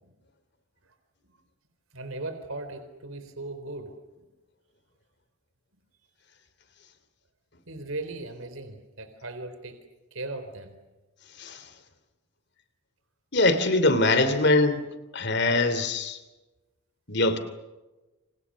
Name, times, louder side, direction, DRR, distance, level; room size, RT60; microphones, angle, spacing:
voice 1, 1.9-3.9 7.7-9.8 10.1-10.7, right 2 dB, 70° right, 8 dB, 4.0 m, -37 dB
voice 2, 13.3-14.8 15.1-16.2 17.1-17.4, left 2 dB, 50° left, 12 dB, 3.0 m, -22 dB
29.0 x 27.0 x 6.4 m, 1.1 s
head